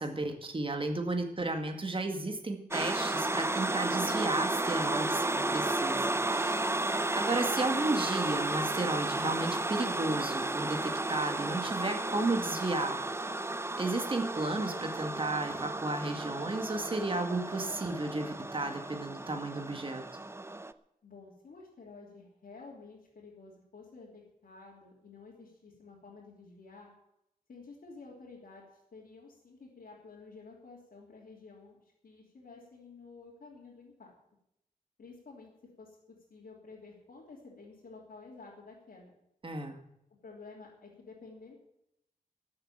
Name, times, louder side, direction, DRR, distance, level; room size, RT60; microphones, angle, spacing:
voice 1, 0.0-6.7 7.1-13.0 13.8-20.0 39.4-39.8, right 2 dB, 35° right, 5 dB, 2.0 m, -33 dB
sound 1, 2.7-20.7, right 2 dB, 15° right, 0.6 m, -33 dB
voice 2, 21.0-26.9 27.5-34.1 35.0-35.5 35.8-39.1 40.2-41.5, left 4 dB, 90° left, -6 dB, 3.2 m, -51 dB
13.0 x 7.8 x 8.8 m, 0.81 s
wide cardioid pair, 85°, 15 cm